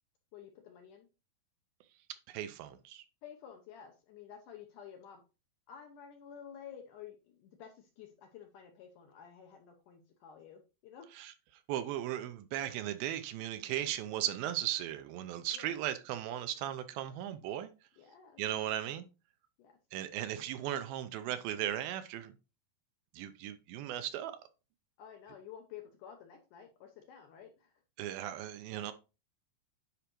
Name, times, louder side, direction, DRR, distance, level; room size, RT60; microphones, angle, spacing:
voice 1, 0.3-1.1 3.2-5.2 5.7-11.1 15.5-15.7 18.0-18.4 19.6-19.8 25.0-27.7, left 8 dB, 75° left, 2.0 m, -52 dB
voice 2, 2.3-3.0 11.1-11.3 11.7-17.7 18.4-19.1 19.9-22.3 23.1-24.3 28.0-28.9, right 12 dB, 80° right, 2.3 m, -37 dB
10.0 x 4.9 x 3.0 m
omnidirectional pair, 4.5 m